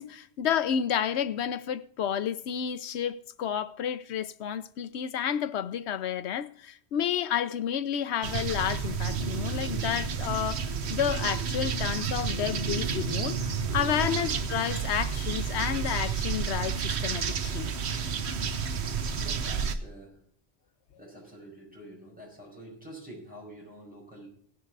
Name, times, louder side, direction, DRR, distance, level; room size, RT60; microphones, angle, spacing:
voice 1, 0.0-10.6 10.9-17.8, left 9 dB, 85° left, 0.9 m, -31 dB
sound 1, 8.2-19.7, right 6 dB, 80° right, 1.1 m, -31 dB
voice 2, 14.0-14.4 19.2-20.2 21.0-24.3, right 1 dB, 10° right, 5.8 m, -47 dB
17.5 x 6.6 x 4.6 m
omnidirectional pair, 1.1 m